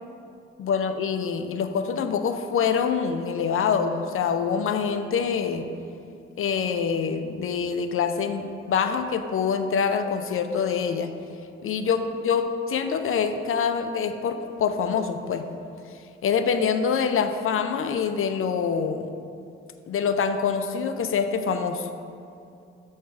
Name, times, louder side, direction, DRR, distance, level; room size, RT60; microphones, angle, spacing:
voice 1, 0.6-5.7 6.4-11.1 11.6-15.5 16.2-19.1 19.9-21.9, left 6 dB, 45° left, 8 dB, 0.5 m, -25 dB
6.5 x 3.2 x 4.6 m, 2.5 s
supercardioid pair, 55°, 30 cm